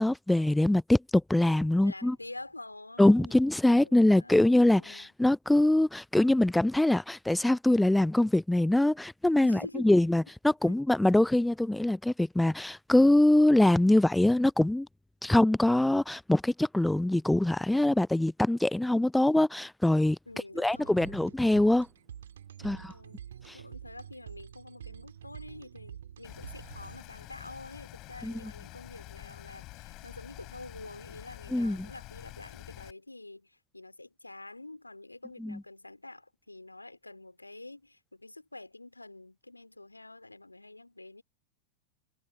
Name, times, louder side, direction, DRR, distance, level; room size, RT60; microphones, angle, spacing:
voice 1, 0.0-2.2 3.0-14.9 15.2-20.2 20.6-21.9 22.6-22.9 23.5-23.6 28.2-28.3 31.5-31.9 35.4-35.6, left 1 dB, 5° left, 0.5 m, -24 dB
voice 2, 1.7-3.3 3.8-5.1 9.4-9.9 10.7-10.8 20.3-21.2 22.6-23.2 23.5-41.2, left 2 dB, 85° left, 3.0 m, -47 dB
sound 1, 20.7-27.3, right 9 dB, 65° right, 2.3 m, -47 dB
Rain, 26.2-32.9, left 19 dB, 40° left, 4.0 m, -48 dB
figure-of-eight pair, 90°, 0 cm